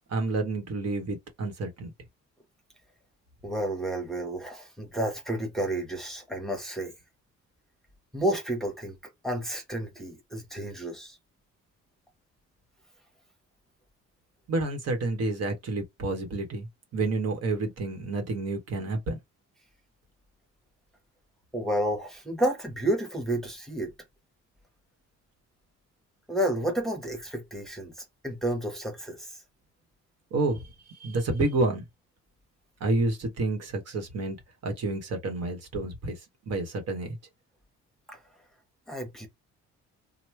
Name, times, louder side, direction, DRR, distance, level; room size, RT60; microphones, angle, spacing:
voice 1, 0.1-1.9 14.5-16.7 16.9-19.2 30.3-31.8 32.8-34.4 34.6-36.1 36.5-37.2, right 2 dB, 60° right, 1.3 m, -29 dB
voice 2, 3.4-6.9 8.1-9.0 9.2-11.2 21.5-23.9 26.3-29.4 38.1-38.2 38.9-39.3, right 1 dB, ahead, 1.2 m, -31 dB
2.9 x 2.2 x 3.3 m
cardioid pair, 85°, 29 cm